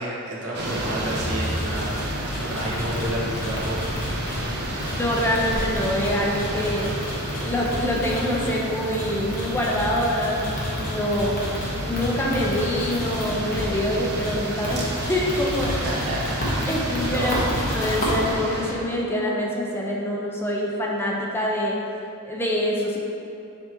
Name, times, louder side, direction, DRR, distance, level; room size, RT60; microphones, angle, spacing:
voice 1, 0.0-3.8 15.6-17.4, right 1 dB, 75° right, -6 dB, 1.4 m, -31 dB
sound 1, 0.5-18.7, right 1 dB, 50° right, 0.7 m, -32 dB
sound 2, 0.6-18.3, left 1 dB, 40° left, 1.2 m, -30 dB
voice 2, 5.0-6.9 7.3-11.4 11.8-15.8 16.7-17.4 17.7-21.8 22.3-23.0, left 1 dB, 10° left, -3 dB, 0.5 m, -25 dB
6.6 x 4.8 x 3.0 m, 2.6 s
head